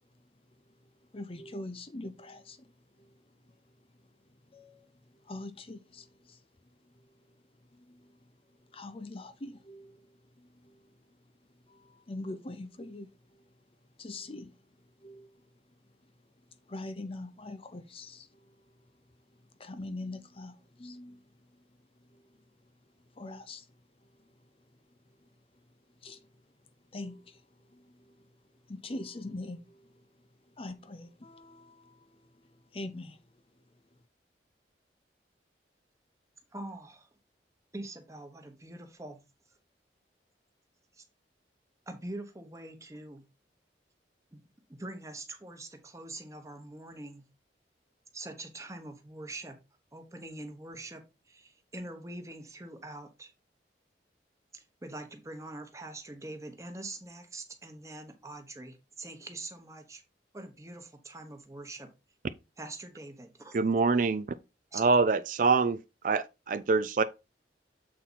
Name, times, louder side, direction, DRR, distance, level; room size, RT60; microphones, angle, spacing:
voice 1, 1.1-3.6 4.5-6.4 6.8-7.1 7.7-8.3 8.6-11.2 11.7-13.5 14.0-15.5 16.0-16.1 16.7-18.6 19.6-21.3 22.0-22.2 23.1-23.7 26.0-26.3 26.9-27.4 27.7-28.3 28.7-29.9 30.6-33.2, left 2 dB, 30° left, 0.6 m, -44 dB
voice 2, 36.5-37.1 37.7-39.2 40.9-41.0 41.9-43.2 44.3-44.4 44.7-47.3 48.1-49.6 49.9-53.3 54.5-60.0 60.3-61.9 62.6-63.6 64.7-64.8, right 2 dB, 15° right, 1.1 m, -44 dB
voice 3, 63.5-64.3 64.7-65.8 66.0-67.0, right 4 dB, 45° right, 0.4 m, -25 dB
7.6 x 4.2 x 4.1 m
head